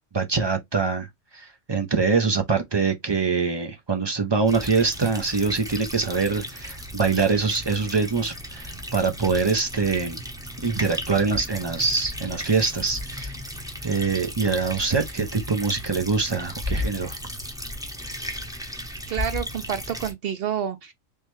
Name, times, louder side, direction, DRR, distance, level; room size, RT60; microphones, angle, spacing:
voice 1, 0.1-10.2 10.6-13.3 13.8-17.2, right 4 dB, 40° right, 0.3 m, -24 dB
sound 1, 4.5-20.1, left 1 dB, 5° right, 0.7 m, -35 dB
voice 2, 19.1-20.9, right 8 dB, 60° right, 0.7 m, -29 dB
3.5 x 3.1 x 3.1 m
omnidirectional pair, 1.3 m